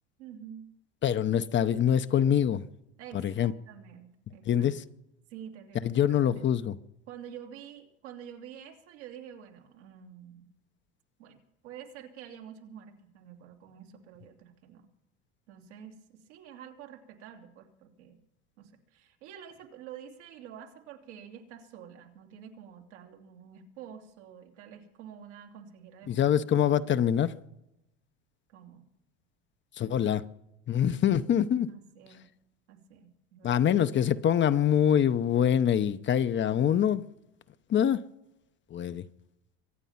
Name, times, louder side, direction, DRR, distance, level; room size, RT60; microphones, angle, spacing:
voice 1, 0.2-0.7 3.0-4.7 5.3-6.0 6.2-6.5 7.1-10.5 11.2-14.9 15.5-18.2 18.6-26.3 28.5-28.9 31.0-31.2 31.7-32.3 32.7-33.7, right 9 dB, 85° right, 2.8 m, -48 dB
voice 2, 1.0-2.6 3.1-3.5 4.5-4.8 5.8-6.7 26.1-27.3 29.8-30.2 30.7-31.7 33.4-37.0 37.7-38.0 38.7-39.0, left 9 dB, 35° left, 0.7 m, -25 dB
24.0 x 9.1 x 5.7 m
supercardioid pair, 100°, 35 cm